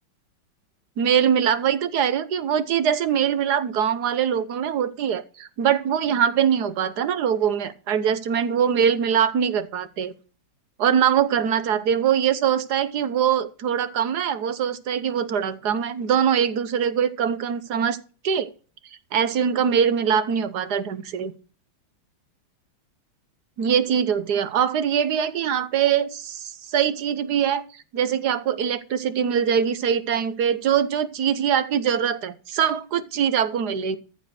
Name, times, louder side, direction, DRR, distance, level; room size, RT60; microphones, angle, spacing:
voice 1, 1.0-10.1 10.8-18.0 18.2-18.5 19.1-21.3 23.6-27.6 27.9-34.0, right 8 dB, 60° right, 13 dB, 1.4 m, -23 dB
14.0 x 5.1 x 6.4 m, 0.37 s
omnidirectional pair, 2.2 m